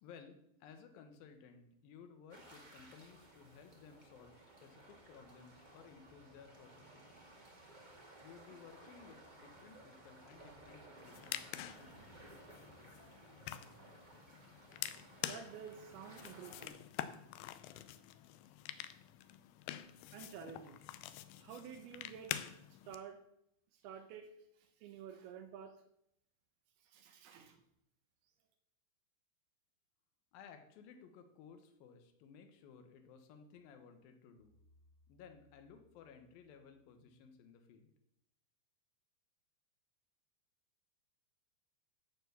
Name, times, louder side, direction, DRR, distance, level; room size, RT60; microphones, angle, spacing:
voice 1, 0.0-7.2 8.2-12.2 30.3-34.6 35.1-37.9, left 6 dB, 70° left, 7 dB, 2.7 m, -58 dB
sound 1, 2.3-16.7, right 2 dB, 25° right, 0.9 m, -58 dB
sound 2, 11.0-23.0, left 13 dB, 90° left, 2.7 m, -47 dB
voice 2, 15.2-16.9 20.1-20.8 21.3-22.3 22.7-23.2 23.7-24.3 24.6-25.8 26.8-27.6, right 8 dB, 80° right, 5 dB, 2.8 m, -51 dB
sound 3, 34.4-37.5, left 2 dB, 30° left, 2.0 m, -72 dB
13.5 x 4.6 x 6.8 m, 0.77 s
omnidirectional pair, 4.5 m